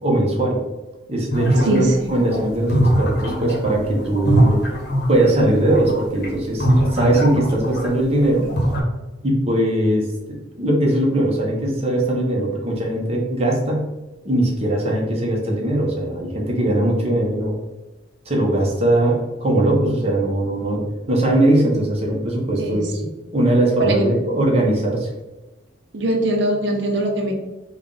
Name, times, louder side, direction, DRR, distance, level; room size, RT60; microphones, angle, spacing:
voice 1, 0.0-0.6 1.1-4.6 5.1-8.5 9.2-13.9 14.2-17.5 18.3-20.8 21.1-23.0 23.3-25.1, right 1 dB, 35° right, -1 dB, 0.8 m, -20 dB
sound 1, 1.3-8.0 8.3-8.8, equal, 55° left, 0.9 m, -21 dB
voice 2, 1.6-2.1 22.6-22.8 23.8-24.1 25.9-27.3, right 1 dB, 65° right, 2 dB, 0.6 m, -21 dB
3.4 x 2.3 x 3.8 m, 1.1 s
head